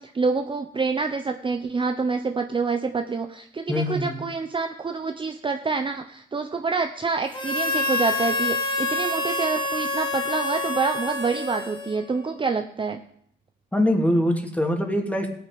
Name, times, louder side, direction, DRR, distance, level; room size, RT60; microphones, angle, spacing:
voice 1, 0.0-13.0, right 4 dB, 25° right, 5 dB, 0.9 m, -27 dB
voice 2, 3.7-4.2 13.7-15.3, left 1 dB, 5° left, 3 dB, 2.6 m, -23 dB
Harmonica, 7.3-12.2, left 2 dB, 25° left, 2.2 m, -27 dB
16.5 x 9.0 x 5.2 m, 0.66 s
cardioid pair, 90°, 20 cm